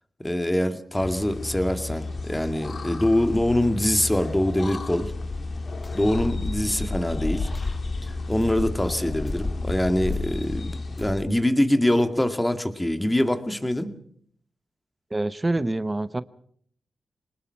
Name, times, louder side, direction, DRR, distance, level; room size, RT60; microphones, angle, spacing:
voice 1, 0.2-5.1 5.9-7.5 8.0-13.9, left 1 dB, 10° left, 7 dB, 2.2 m, -24 dB
sound 1, 1.0-11.1, left 3 dB, 55° left, 2.7 m, -31 dB
sound 2, 3.3-3.7 4.1-4.5 5.0-5.4 5.8-6.1 6.7-7.1 7.5-7.9 8.4-8.8 9.3-9.7 10.1-10.5 11.0-11.4, left 1 dB, 30° left, 2.4 m, -40 dB
voice 2, 15.1-16.2, right 2 dB, 20° right, 13 dB, 1.0 m, -26 dB
25.0 x 20.0 x 5.8 m, 0.62 s
cardioid pair, 75°, 0 cm